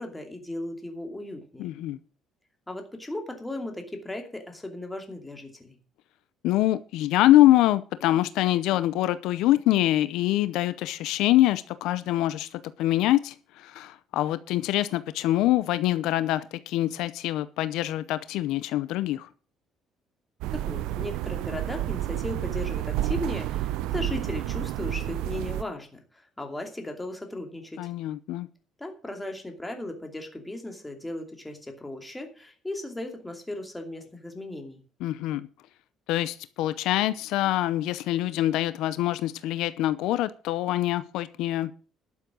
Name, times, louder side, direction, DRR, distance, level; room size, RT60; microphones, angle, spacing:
voice 1, 0.0-1.7 2.7-5.8 20.5-27.9 28.8-34.8, left 1 dB, 10° left, 2.6 m, -36 dB
voice 2, 1.6-2.0 6.4-19.3 27.8-28.5 35.0-35.5 36.1-41.7, left 15 dB, 80° left, 0.6 m, -24 dB
sound 1, 20.4-25.6, right 14 dB, 85° right, 0.6 m, -30 dB
12.0 x 7.3 x 6.2 m
cardioid pair, 145°, 0 cm